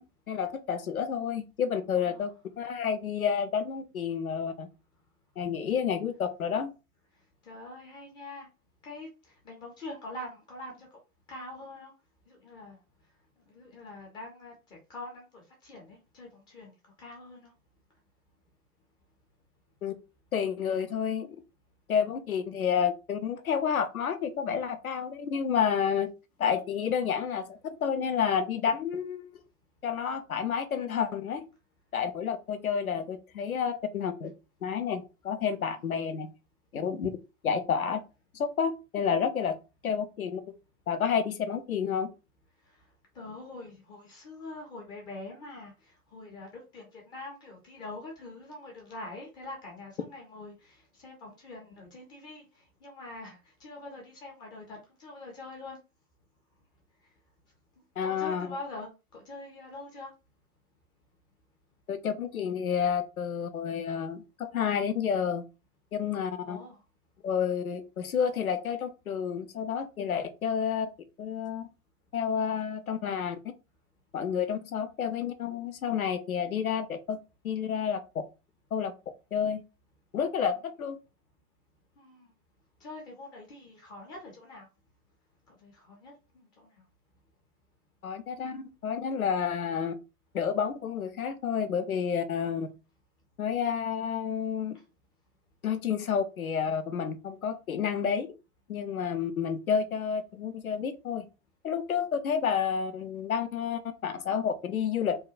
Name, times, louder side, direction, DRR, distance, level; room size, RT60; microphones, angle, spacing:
voice 1, 0.3-2.3 2.6-4.7 5.4-6.7 19.8-19.9 20.3-21.3 21.9-26.1 26.4-29.3 29.8-31.5 31.9-34.3 34.6-36.3 36.7-37.1 37.4-38.0 38.3-39.6 39.8-40.4 40.9-42.1 58.0-58.5 61.9-65.4 65.9-66.6 67.2-70.9 71.2-71.7 72.1-73.4 74.1-77.2 77.4-78.0 78.7-78.9 79.3-79.6 80.1-81.0 88.0-89.9 90.3-92.7 93.4-94.8 95.6-98.3 98.7-101.2 101.6-105.2, left 7 dB, 85° left, 0.5 m, -30 dB
voice 2, 1.9-2.3 7.4-8.5 8.8-10.9 11.3-11.9 12.3-12.8 13.5-17.5 35.6-35.8 43.1-55.8 58.0-60.1 66.4-66.8 82.0-82.3 82.8-84.7 85.5-86.7 89.0-89.2, left 2 dB, 10° left, 0.3 m, -44 dB
2.7 x 2.1 x 2.4 m
figure-of-eight pair, 90°, 42 cm